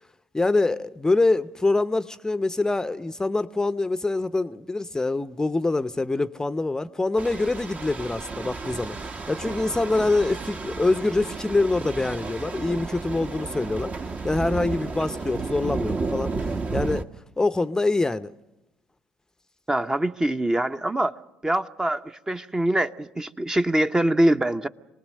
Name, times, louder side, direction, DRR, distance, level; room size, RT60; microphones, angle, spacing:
voice 1, 0.3-17.1 17.4-18.3, left 2 dB, 15° left, 0.7 m, -25 dB
sound 1, 7.2-17.0, right 3 dB, 35° right, 1.1 m, -32 dB
voice 2, 19.7-21.1 21.4-24.7, right 1 dB, 15° right, 0.8 m, -24 dB
27.0 x 19.5 x 6.5 m
hypercardioid pair, 60°, 4 cm